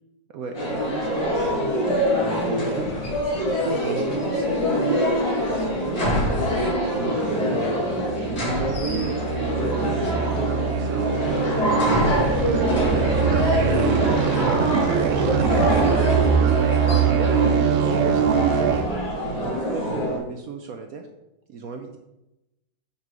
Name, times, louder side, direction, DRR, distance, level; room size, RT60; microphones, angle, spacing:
voice 1, 0.3-5.0 5.3-6.1 6.9-12.0 12.5-13.5 13.9-15.4 16.4-18.8 19.0-21.1 21.5-22.0, right 5 dB, 65° right, 5 dB, 1.0 m, -35 dB
sound 1, 0.5-20.2, equal, 85° left, 3.6 m, -24 dB
sound 2, 7.4-18.9, right 8 dB, 90° right, 0.6 m, -23 dB
8.9 x 4.4 x 4.8 m, 0.94 s
omnidirectional pair, 2.0 m